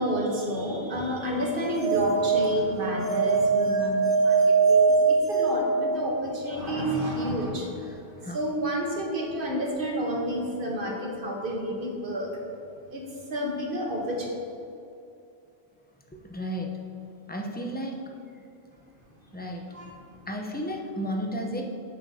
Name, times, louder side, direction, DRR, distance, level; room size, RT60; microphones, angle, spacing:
voice 1, 0.0-7.7 8.3-12.3 12.9-13.0 13.3-14.3 19.7-19.9 20.6-20.7, equal, 55° right, 0 dB, 1.3 m, -30 dB
sound 1, 1.5-6.4, right 4 dB, 30° right, 1.5 m, -23 dB
voice 2, 16.1-16.7 17.3-18.0 19.3-19.6 20.3-21.6, equal, 10° left, 1 dB, 0.7 m, -32 dB
11.0 x 7.9 x 2.8 m, 2.6 s
omnidirectional pair, 1.1 m